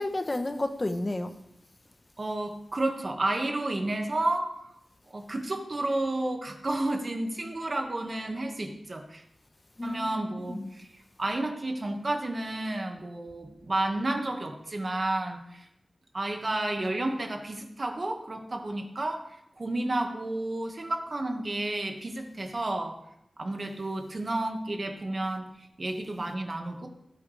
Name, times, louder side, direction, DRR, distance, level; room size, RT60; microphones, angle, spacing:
voice 1, 0.0-1.3 9.8-10.1 10.4-10.7, left 2 dB, 30° left, 0.9 m, -31 dB
voice 2, 2.2-4.6 5.1-9.2 9.8-10.9 11.2-15.6 16.1-19.3 19.6-23.0 23.4-26.9, right 2 dB, 45° right, 1.7 m, -31 dB
18.5 x 8.5 x 3.4 m
wide cardioid pair, 95°, 0 cm